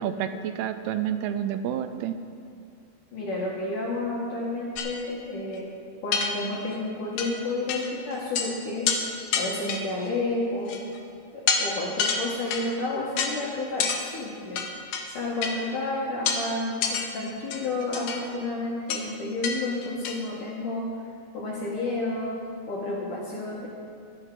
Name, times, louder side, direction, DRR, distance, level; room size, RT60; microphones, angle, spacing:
voice 1, 0.0-2.2, right 9 dB, 80° right, 9 dB, 2.4 m, -29 dB
voice 2, 3.1-5.7 6.0-8.9 9.4-10.7 11.3-14.7 15.0-20.9 21.3-22.3 22.7-23.7, left 2 dB, 60° left, -4 dB, 2.5 m, -31 dB
sound 1, 4.8-4.9 5.5-5.6 6.1-6.7 7.2-7.3 7.7-8.5 8.9-9.0 9.3-10.1 10.7-11.0 11.5-11.6 12.0-12.7 13.2-13.3 13.8-14.0 14.6-15.0 15.4-15.6 16.3-16.4 16.8-17.1 17.5-18.2 18.9-19.0 19.4-19.6 19.8-20.2, left 6 dB, 85° left, 1.7 m, -27 dB
23.0 x 8.1 x 3.8 m, 2.3 s
omnidirectional pair, 4.9 m